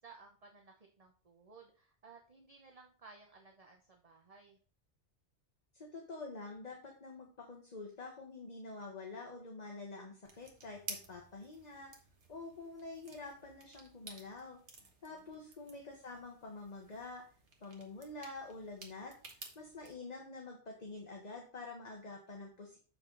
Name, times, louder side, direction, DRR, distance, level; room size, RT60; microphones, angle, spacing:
voice 1, 0.0-4.6 15.1-15.4, right 4 dB, 35° right, 2 dB, 0.9 m, -58 dB
voice 2, 5.7-11.9 12.3-14.6 15.0-17.2 17.6-19.1 19.5-22.8, left 3 dB, 40° left, 0 dB, 1.3 m, -47 dB
sound 1, 10.2-19.9, right 3 dB, 85° right, 1.6 m, -53 dB
7.1 x 5.6 x 3.8 m, 0.40 s
omnidirectional pair, 1.1 m